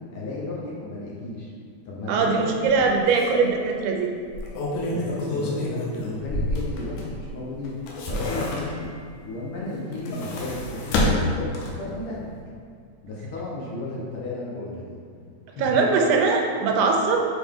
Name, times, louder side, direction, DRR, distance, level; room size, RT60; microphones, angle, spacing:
voice 1, 0.1-1.5 1.8-2.9 3.3-3.4 4.7-7.7 8.1-8.9 9.2-11.5 11.8-12.3 13.0-15.0 15.5-15.8, left 2 dB, 65° left, -5 dB, 1.4 m, -33 dB
voice 2, 2.1-4.1 15.6-17.3, right 4 dB, 80° right, 2 dB, 2.0 m, -21 dB
sound 1, 2.6-2.8 3.2-3.3 4.2-7.3 7.7-9.0 9.8-11.9 12.3-12.4, left 1 dB, 90° left, 2.3 m, -28 dB
6.8 x 4.0 x 3.6 m, 2.2 s
omnidirectional pair, 3.5 m